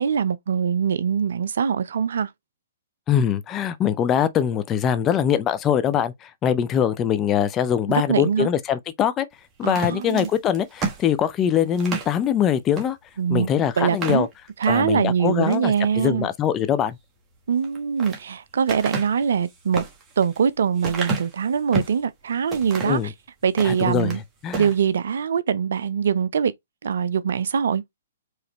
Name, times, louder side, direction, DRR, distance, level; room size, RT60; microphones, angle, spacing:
voice 1, 0.0-2.3 7.9-8.5 9.6-10.3 13.2-13.5 13.8-14.3 14.6-16.3 17.5-19.8 20.2-23.1 23.4-24.2 24.5-26.5 26.8-27.8, right 7 dB, 60° right, 0.4 m, -23 dB
voice 2, 3.1-9.3 9.6-13.0 13.3-14.3 14.7-17.0 22.8-23.1 23.6-24.2 24.4-24.7, left 9 dB, 20° left, 0.5 m, -22 dB
sound 1, 9.6-12.2 12.7-12.9 13.3-13.4 13.8-14.8 15.3-15.7 17.5-18.2 18.7-22.0 22.5-23.1 23.5-24.2 24.5-24.8, right 3 dB, 20° right, 1.3 m, -31 dB
4.8 x 3.1 x 2.8 m
figure-of-eight pair, 120°, 0 cm